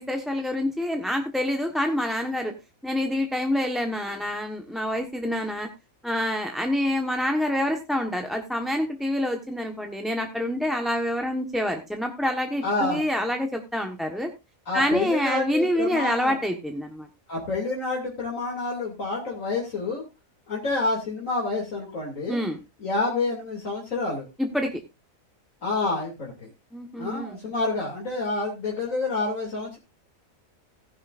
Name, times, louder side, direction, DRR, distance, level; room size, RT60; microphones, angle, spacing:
voice 1, 0.0-2.5 2.8-5.7 6.0-14.3 14.7-17.1 22.3-22.6 24.4-24.7 26.7-27.4, left 1 dB, ahead, 4 dB, 1.1 m, -27 dB
voice 2, 12.6-13.0 14.7-16.3 17.3-20.1 20.5-22.4 22.8-24.3 25.6-26.5 27.0-29.8, left 3 dB, 70° left, -2 dB, 3.2 m, -28 dB
16.0 x 10.5 x 2.5 m, 0.25 s
omnidirectional pair, 1.4 m